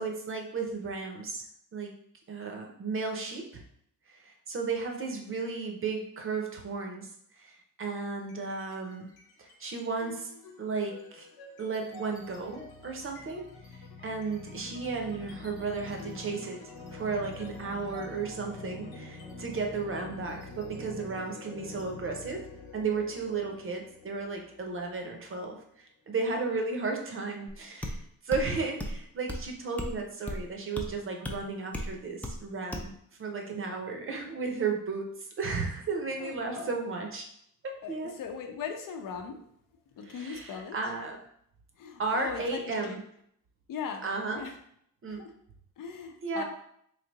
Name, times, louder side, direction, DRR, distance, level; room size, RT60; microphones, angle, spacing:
voice 1, 0.0-1.4 1.7-1.9 2.3-3.6 4.1-7.1 7.4-9.1 9.4-10.3 10.6-11.3 11.6-13.5 14.0-16.6 16.9-22.4 22.7-28.0 28.2-32.9 33.2-35.1 35.4-37.3 37.9-38.1 40.0-41.2 42.0-43.0 44.0-44.4 45.0-45.2 46.2-46.4, right 4 dB, 35° right, 2 dB, 0.7 m, -34 dB
sound 1, 8.2-8.7 9.1-25.7, left 3 dB, 90° left, 0.9 m, -46 dB
sound 2, 27.5-27.6 27.8-28.0 28.3-28.5 28.8-29.0 29.3-29.4 29.8-29.9 30.3-30.4 30.8-30.9 31.2-31.4 31.7-31.9 32.2-32.4 32.7-32.9, left 1 dB, 5° left, 0.4 m, -34 dB
voice 2, 36.2-36.7 37.8-39.4 40.0-40.8 41.8-43.0 43.7-44.1 44.3-44.5 45.2-45.3 45.8-46.4, left 6 dB, 65° left, 4 dB, 0.7 m, -39 dB
3.3 x 2.7 x 4.0 m, 0.68 s
cardioid pair, 125°, 36 cm